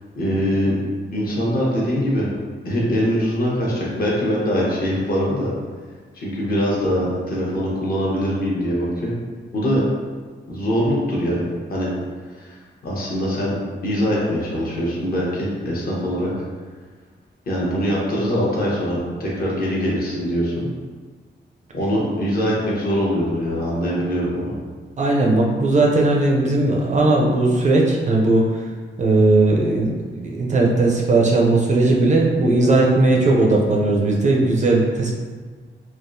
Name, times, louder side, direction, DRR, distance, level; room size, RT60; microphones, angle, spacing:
voice 1, 0.1-0.8 1.1-2.3 2.6-5.5 6.1-9.1 9.5-9.8 10.5-11.9 12.3-12.6 12.8-13.6 13.8-16.3 17.5-20.7 21.7-24.6, equal, 50° left, -5 dB, 0.9 m, -22 dB
voice 2, 25.0-28.5 29.0-35.2, right 2 dB, 40° right, -2 dB, 0.4 m, -17 dB
3.5 x 2.4 x 2.5 m, 1.5 s
wide cardioid pair, 150°, 20 cm